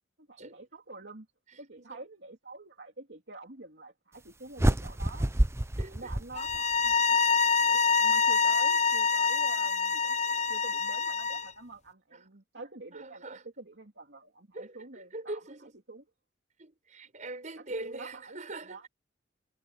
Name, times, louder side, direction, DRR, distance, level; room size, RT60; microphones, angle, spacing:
voice 1, 0.2-1.3 1.6-5.3 5.8-7.2 7.7-10.2 10.5-15.4 15.9-16.0 17.6-18.9, right 3 dB, 70° right, 3.2 m, -47 dB
voice 2, 1.5-2.0 5.8-6.1 12.1-12.3 12.9-13.4 14.5-15.8 16.6-18.9, right 2 dB, 45° right, 6.0 m, -43 dB
sound 1, 4.6-6.9, right 1 dB, 15° right, 0.8 m, -28 dB
sound 2, 6.4-11.5, left 5 dB, 40° left, 0.8 m, -26 dB
head